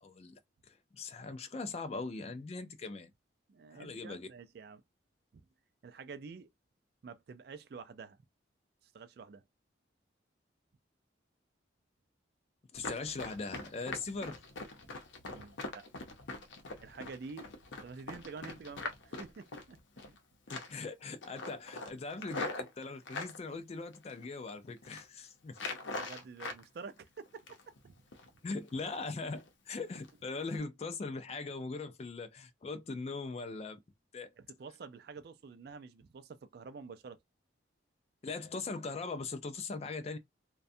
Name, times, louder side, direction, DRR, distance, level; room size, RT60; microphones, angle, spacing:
voice 1, 0.0-3.1 3.7-4.3 12.7-14.4 20.5-25.6 28.4-33.8 34.1-34.3 38.2-40.2, left 3 dB, 35° left, 0.3 m, -40 dB
voice 2, 3.5-4.8 5.3-5.4 5.8-6.5 7.0-8.2 8.8-9.4 15.3-15.9 16.8-17.5 17.8-19.8 20.1-20.2 25.9-27.6 27.8-28.0 28.3-28.4 34.4-37.2, right 5 dB, 55° right, 0.3 m, -48 dB
Run, 12.7-20.2 20.5-20.9 21.2-23.4 23.9-24.5 24.8-25.0 25.5-26.6 27.0-27.8 28.1-28.3 28.7-29.0 29.3-29.5 29.9-30.1 30.5-30.6, left 3 dB, 75° left, 0.6 m, -42 dB
2.5 x 2.2 x 2.6 m
head